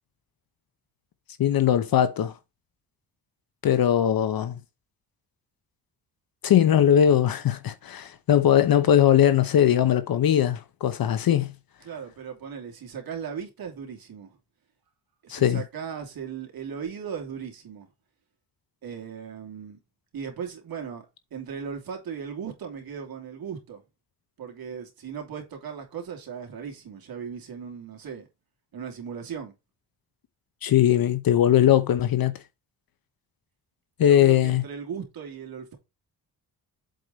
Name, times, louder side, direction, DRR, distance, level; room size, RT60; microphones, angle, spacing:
voice 1, 1.4-2.3 3.6-4.6 6.4-11.5 15.3-15.6 30.6-32.3 34.0-34.6, left 10 dB, 60° left, 0.9 m, -20 dB
voice 2, 11.8-14.4 15.2-17.9 18.8-19.8 20.1-21.1 21.3-23.8 24.4-28.3 28.7-29.5 34.0-35.8, right 7 dB, 60° right, 3.0 m, -37 dB
7.8 x 4.9 x 4.0 m
cardioid pair, 130°, 40 cm